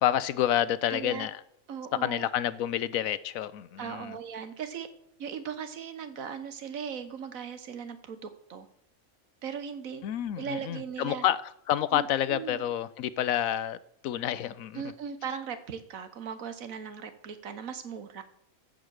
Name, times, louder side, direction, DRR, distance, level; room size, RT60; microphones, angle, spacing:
voice 1, 0.0-1.4 2.0-4.2 10.0-13.8 14.0-14.8, left 11 dB, 85° left, 16 dB, 1.1 m, -29 dB
voice 2, 0.9-1.3 1.7-2.3 3.8-4.9 5.2-8.7 9.4-10.0 10.4-11.3 11.9-12.6 14.7-18.2, right 7 dB, 80° right, 10 dB, 1.5 m, -38 dB
14.0 x 5.2 x 6.4 m, 0.75 s
omnidirectional pair, 1.4 m